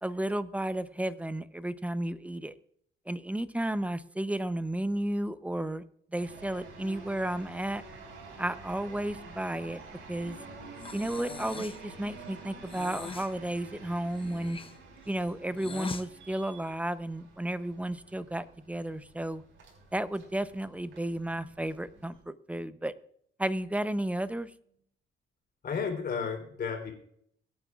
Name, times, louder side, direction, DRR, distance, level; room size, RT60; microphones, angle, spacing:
voice 1, 0.0-2.6 3.1-5.8 6.1-7.8 8.4-9.8 10.1-10.4 10.9-14.6 15.1-19.4 19.9-22.9 23.4-24.5, right 1 dB, 5° right, 13 dB, 0.7 m, -33 dB
sound 1, 6.2-22.2, right 3 dB, 75° right, 5.1 m, -49 dB
Breathing, 10.8-11.9 12.6-13.3 14.1-16.1, left 5 dB, 25° left, 0.7 m, -42 dB
voice 2, 25.6-26.9, left 6 dB, 50° left, 3 dB, 3.6 m, -32 dB
23.5 x 9.3 x 2.4 m, 0.66 s
cardioid pair, 90°, 20 cm